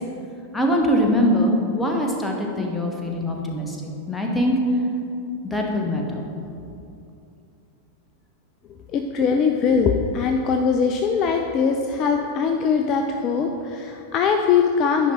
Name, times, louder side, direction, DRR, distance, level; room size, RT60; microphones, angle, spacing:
voice 1, 0.5-4.6 5.4-6.2, equal, 10° left, 1 dB, 1.1 m, -22 dB
voice 2, 8.9-15.1, left 6 dB, 35° left, 4 dB, 0.4 m, -21 dB
10.5 x 5.2 x 4.2 m, 2.6 s
figure-of-eight pair, 90°, 0 cm